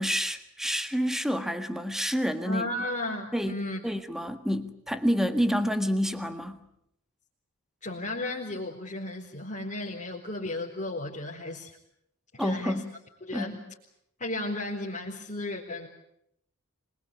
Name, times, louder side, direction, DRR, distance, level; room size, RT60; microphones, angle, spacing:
voice 1, 0.0-2.7 3.3-3.6 3.8-6.6 12.4-12.8 13.3-13.5, equal, ahead, 8 dB, 1.6 m, -28 dB
voice 2, 2.4-3.8 7.8-11.8 12.3-12.8 13.2-13.6 14.2-15.9, left 2 dB, 35° left, -3 dB, 4.3 m, -34 dB
25.5 x 22.5 x 8.5 m, 0.76 s
head